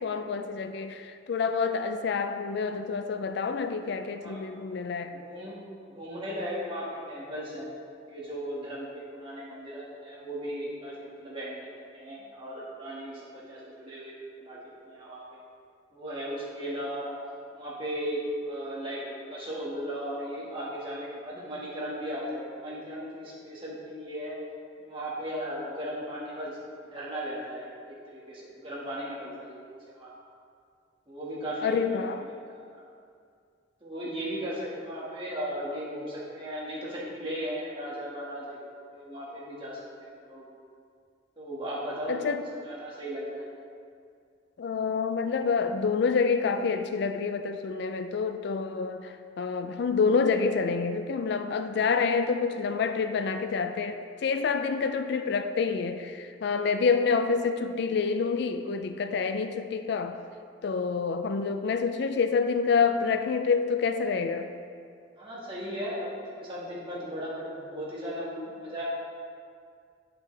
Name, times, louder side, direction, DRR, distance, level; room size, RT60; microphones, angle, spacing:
voice 1, 0.0-5.2 31.6-32.3 42.1-42.5 44.6-60.2 60.6-64.5, left 5 dB, 65° left, 8 dB, 0.4 m, -27 dB
voice 2, 5.1-5.6 5.8-7.8 8.1-11.6 11.9-14.6 14.9-15.4 15.9-17.2 17.5-24.4 24.8-29.6 29.9-30.1 31.1-31.8 32.1-32.8 33.8-40.4 41.4-43.4 65.2-68.8, equal, 30° right, -7 dB, 2.0 m, -37 dB
9.5 x 5.9 x 3.4 m, 2.3 s
head